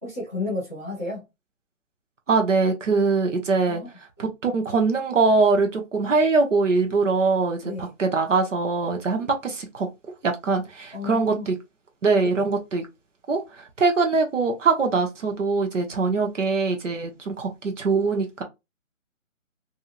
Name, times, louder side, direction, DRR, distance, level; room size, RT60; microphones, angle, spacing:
voice 1, 0.0-1.2 3.7-3.9 7.6-7.9 10.9-11.5 12.4-12.5, left 2 dB, 10° right, 0.9 m, -32 dB
voice 2, 2.3-3.8 4.2-9.9 10.2-11.5 12.0-12.9 13.3-18.4, right 4 dB, 65° right, 0.9 m, -22 dB
2.9 x 2.6 x 2.5 m
hypercardioid pair, 180°, 40 cm